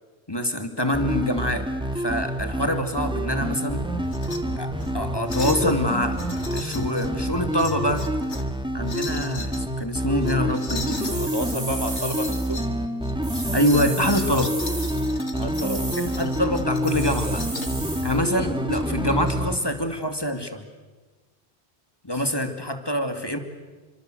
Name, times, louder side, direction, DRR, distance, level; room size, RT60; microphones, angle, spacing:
voice 1, 0.3-1.7 1.9-3.9 4.6-6.2 6.5-8.1 8.7-11.2 13.5-14.6 16.0-17.4 18.0-20.7 22.0-23.4, equal, 20° left, 6 dB, 2.3 m, -25 dB
sound 1, 0.9-19.6, equal, 5° right, 2.0 m, -27 dB
sound 2, 4.0-4.4 4.8-4.9 5.3-5.7 6.1-7.1 7.5-8.5 8.8-9.6 10.2-11.2 11.8-12.7 13.0-17.8 18.7-19.3, left 3 dB, 90° left, 2.6 m, -38 dB
voice 2, 10.9-12.7 15.3-15.9 18.3-18.4, equal, 20° right, 6 dB, 1.8 m, -31 dB
sound 3, 11.0-12.5 13.2-15.1 15.5-16.2 16.8-18.2, right 2 dB, 45° right, 3.7 m, -35 dB
29.0 x 25.0 x 7.7 m, 1.3 s
omnidirectional pair, 1.1 m